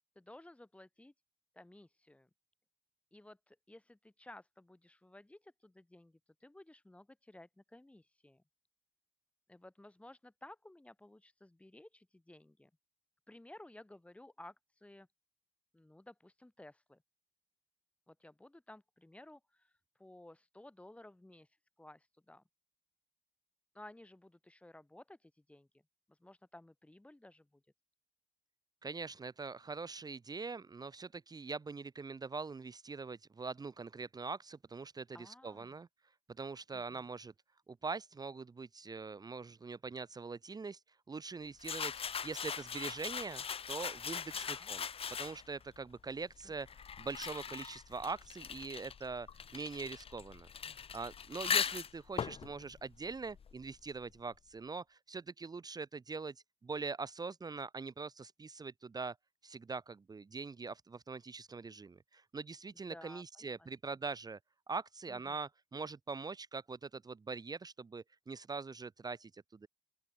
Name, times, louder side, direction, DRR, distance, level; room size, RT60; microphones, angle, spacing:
voice 1, 0.1-1.1 1.5-2.3 3.1-8.4 9.5-12.7 13.3-15.1 15.7-17.0 18.1-19.7 20.0-21.5 21.8-22.4 23.7-25.7 26.1-27.6 35.1-35.8 36.7-37.1 44.4-44.7 46.4-46.5 62.7-63.7 65.1-65.4, left 1 dB, 5° left, 1.5 m, -56 dB
voice 2, 28.8-35.9 36.4-37.3 37.7-40.8 41.1-44.8 45.2-46.7 47.0-49.3 49.5-50.5 50.9-56.3 56.6-59.2 59.4-64.4 64.7-69.7, right 4 dB, 25° right, 1.4 m, -43 dB
sound 1, 41.6-45.6 46.4-53.8, left 7 dB, 35° left, 1.0 m, -40 dB
open air
cardioid pair, 110°, 17 cm